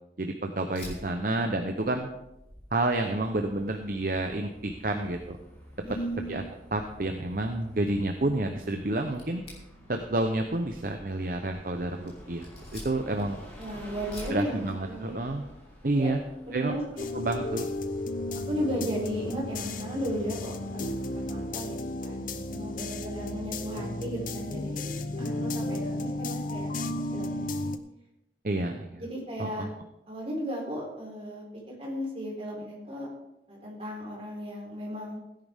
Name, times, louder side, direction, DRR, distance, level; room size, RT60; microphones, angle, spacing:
voice 1, 0.2-2.1 2.7-5.4 6.3-6.4 6.7-9.4 9.9-12.5 12.7-13.4 14.3-15.4 15.8-16.2 16.5-16.7 17.1-17.7 28.4-28.9 29.4-29.7, right 2 dB, 50° right, 5 dB, 0.8 m, -29 dB
Fire, 0.7-19.0, left 1 dB, 35° left, 3.5 m, -51 dB
Bus, 3.1-21.7, equal, 10° left, 3.0 m, -51 dB
voice 2, 5.8-6.4 13.6-15.3 16.0-16.1 16.5-17.0 18.5-24.8 25.1-27.4 29.0-29.7 30.1-33.1 33.5-35.2, equal, 35° right, -3 dB, 4.2 m, -35 dB
sound 1, 17.0-27.8, left 2 dB, 50° left, 0.7 m, -34 dB
16.5 x 10.5 x 3.6 m, 0.88 s
head